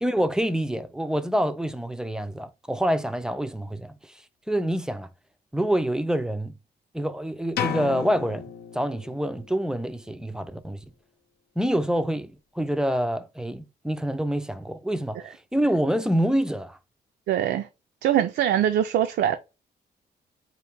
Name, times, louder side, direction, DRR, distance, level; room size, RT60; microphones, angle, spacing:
voice 1, 0.0-4.0 4.5-5.1 5.5-6.5 6.9-10.8 11.6-16.8, equal, 5° right, 0.3 m, -26 dB
sound 1, 7.6-9.4, left 8 dB, 75° left, 0.7 m, -32 dB
voice 2, 17.3-17.7 18.0-19.4, right 10 dB, 85° right, 0.4 m, -22 dB
4.5 x 2.5 x 3.3 m
cardioid pair, 135°, 17 cm